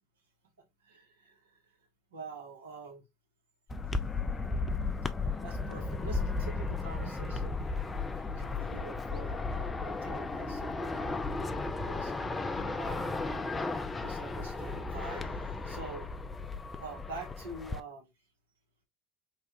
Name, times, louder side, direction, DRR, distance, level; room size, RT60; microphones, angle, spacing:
voice 1, 0.8-1.7 2.1-3.0 5.4-12.1 12.5-13.2 14.0-16.1 16.8-18.1, right 3 dB, 80° right, 0.9 m, -46 dB
sound 1, 3.7-17.8, left 3 dB, 20° left, 0.3 m, -35 dB
3.1 x 2.2 x 2.7 m
hypercardioid pair, 75°, 0 cm